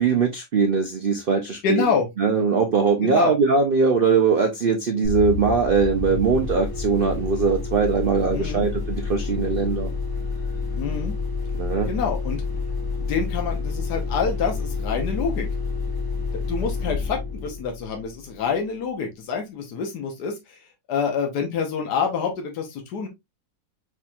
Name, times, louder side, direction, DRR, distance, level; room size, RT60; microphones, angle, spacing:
voice 1, 0.0-1.9 2.2-9.9 11.6-11.9, right 5 dB, 80° right, 0.4 m, -21 dB
voice 2, 1.6-2.1 3.0-3.3 8.3-8.7 10.8-11.1 11.9-12.4 13.1-15.5 16.3-20.6 20.9-23.1, left 6 dB, 70° left, 1.6 m, -27 dB
sound 1, 5.0-18.5, left 4 dB, 15° left, 1.2 m, -29 dB
4.7 x 4.2 x 2.3 m
omnidirectional pair, 1.8 m